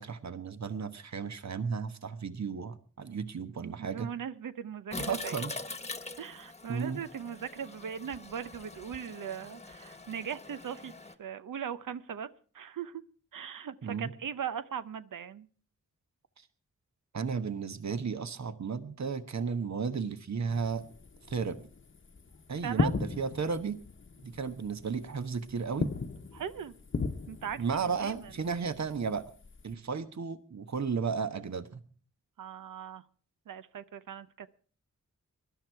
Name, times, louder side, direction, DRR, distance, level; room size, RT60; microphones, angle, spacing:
voice 1, 0.0-4.1 5.0-5.5 6.7-7.0 13.8-14.1 16.4-16.5 17.1-20.8 21.3-21.6 22.5-23.8 24.2-25.9 27.6-29.3 29.6-31.8, right 5 dB, 60° right, 11 dB, 1.2 m, -34 dB
voice 2, 3.6-5.4 6.2-10.9 11.2-12.3 12.5-13.0 13.3-15.5 22.6-22.9 26.3-26.7 27.3-28.3 32.4-33.0 33.5-34.5, right 8 dB, 85° right, 13 dB, 0.7 m, -39 dB
Toilet flush, 4.9-11.1, left 3 dB, 20° left, 1.3 m, -43 dB
sound 1, 20.5-29.7, left 4 dB, 40° left, 1.0 m, -38 dB
19.5 x 12.0 x 4.6 m, 0.42 s
cardioid pair, 65°, 31 cm